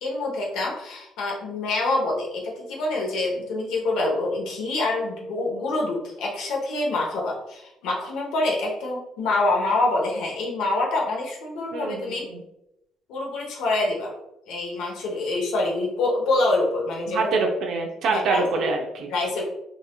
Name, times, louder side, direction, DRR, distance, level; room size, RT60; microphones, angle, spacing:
voice 1, 0.0-12.2 13.1-14.1 14.5-17.3 18.1-18.7 19.1-19.4, left 2 dB, 80° left, -1 dB, 0.9 m, -26 dB
voice 2, 11.7-12.4 17.1-19.1, right 3 dB, 65° right, 1 dB, 0.5 m, -25 dB
3.9 x 2.7 x 2.3 m, 0.84 s
cardioid pair, 85°, 0 cm